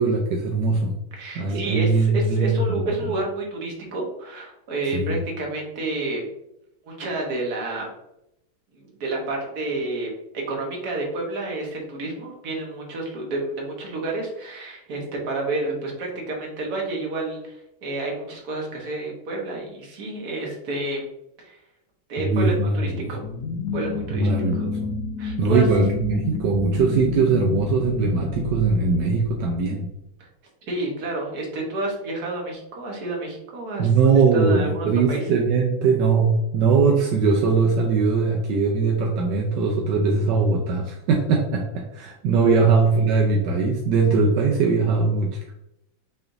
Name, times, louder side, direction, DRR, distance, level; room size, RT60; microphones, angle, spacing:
voice 1, 0.0-1.0 1.4-2.8 4.9-5.1 22.2-23.1 24.1-24.9 25.4-29.9 33.8-45.5, right 4 dB, 75° right, 0 dB, 1.0 m, -21 dB
voice 2, 1.1-6.3 6.8-7.9 8.7-10.1 10.5-21.1 21.4-21.6 22.1-23.2 23.7-24.7 25.2-25.7 30.2-30.3 30.6-33.9 34.3-35.2 42.6-42.7, right 2 dB, 50° right, -1 dB, 1.4 m, -30 dB
sound 1, 23.2-29.6, left 5 dB, 80° left, 0.9 m, -30 dB
5.7 x 3.3 x 2.6 m, 0.83 s
omnidirectional pair, 2.4 m